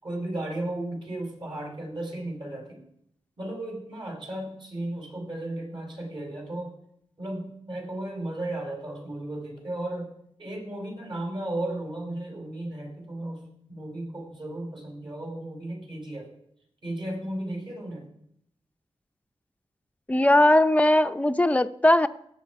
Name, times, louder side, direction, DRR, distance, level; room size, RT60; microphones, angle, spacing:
voice 1, 0.0-2.8 3.4-6.7 7.2-10.1 10.4-16.3 16.8-18.1, right 1 dB, 45° right, 1 dB, 5.2 m, -35 dB
voice 2, 20.1-22.1, left 1 dB, 15° left, 10 dB, 0.6 m, -19 dB
18.0 x 7.7 x 4.8 m, 0.72 s
cardioid pair, 65°, 11 cm